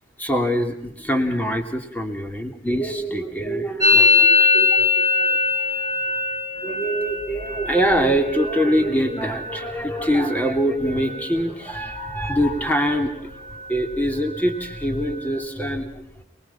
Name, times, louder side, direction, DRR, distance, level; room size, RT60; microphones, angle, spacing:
voice 1, 0.2-5.9 6.1-6.2 6.6-13.3 13.7-16.2, equal, 10° left, 4 dB, 2.9 m, -24 dB
Musical instrument, 3.8-11.5 11.7-12.3 12.5-13.1 13.4-15.4, left 3 dB, 15° right, 2.2 m, -23 dB
29.5 x 21.0 x 5.8 m, 0.77 s
head